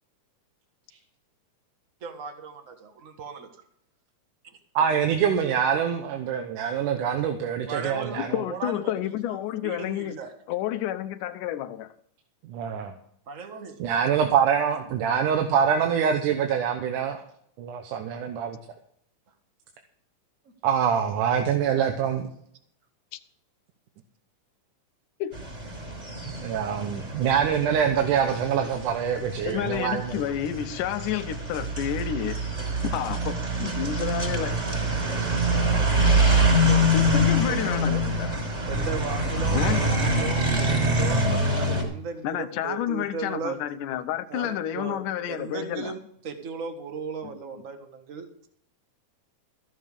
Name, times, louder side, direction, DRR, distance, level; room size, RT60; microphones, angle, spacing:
voice 1, 2.0-3.5 7.7-8.8 9.2-10.3 13.3-13.8 14.7-14.8 35.0-38.0 38.7-43.6 44.3-46.0 46.2-48.5, right 5 dB, 40° right, 1.2 m, -37 dB
voice 2, 4.8-8.4 12.4-12.9 13.8-17.2 17.6-18.6 20.6-22.2 26.3-30.2, right 8 dB, 80° right, 2.5 m, -25 dB
voice 3, 8.2-10.2 10.5-11.9 23.1-23.2 25.2-25.4 29.4-32.4 32.8-34.6 36.9-38.4 39.5-39.9 42.2-45.9 47.2-47.3, left 11 dB, 85° left, 2.3 m, -30 dB
sound 1, 25.3-41.8, right 1 dB, 15° right, 5.3 m, -25 dB
15.0 x 7.4 x 6.7 m
omnidirectional pair, 3.6 m